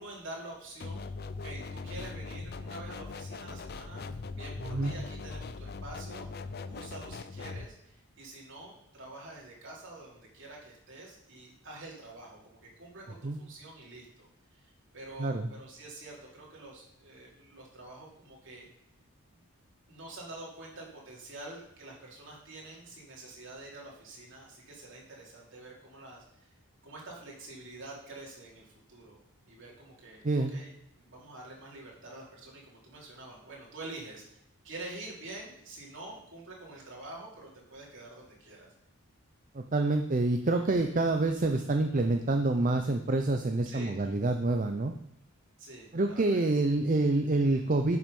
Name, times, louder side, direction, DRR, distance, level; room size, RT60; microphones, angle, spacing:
voice 1, 0.0-6.3 6.7-18.7 19.9-26.5 26.8-29.2 29.4-30.7 31.0-38.7 43.6-44.0 45.6-46.4, right 2 dB, 55° right, -3 dB, 3.1 m, -47 dB
sound 1, 0.8-7.7, left 4 dB, 45° left, 0.5 m, -40 dB
voice 2, 39.5-44.9 45.9-48.0, right 2 dB, 35° right, 6 dB, 0.5 m, -27 dB
11.0 x 6.1 x 5.4 m, 0.76 s
head